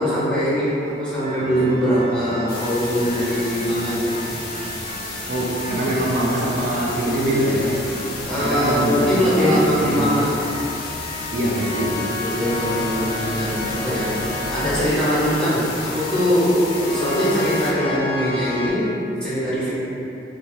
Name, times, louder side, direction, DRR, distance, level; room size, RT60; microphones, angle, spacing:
voice 1, 0.0-4.2 8.2-10.3 12.2-14.2 14.5-19.7, equal, 5° left, -12 dB, 0.9 m, -21 dB
sound 1, 1.2-18.7, left 2 dB, 30° right, 0.9 m, -33 dB
sound 2, 2.5-17.7, left 3 dB, 55° left, 0.4 m, -33 dB
sound 3, 2.5-14.9, equal, 80° right, 1.0 m, -39 dB
voice 2, 5.3-7.9 8.4-10.1 11.3-12.0, right 1 dB, 50° right, -4 dB, 0.4 m, -23 dB
2.7 x 2.3 x 3.2 m, 2.9 s
head